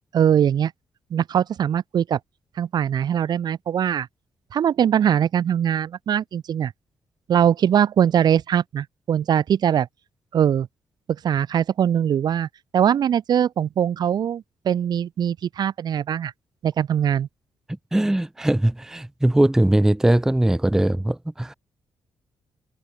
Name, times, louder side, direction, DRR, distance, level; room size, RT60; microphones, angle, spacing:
voice 1, 0.1-0.7 1.1-2.2 2.6-4.1 4.5-6.7 7.3-9.9 10.3-10.7 11.1-16.3 16.6-17.3, right 9 dB, 50° right, 1.3 m, -21 dB
voice 2, 17.9-21.5, right 1 dB, 5° right, 0.7 m, -20 dB
wide cardioid pair, 175°, 9 cm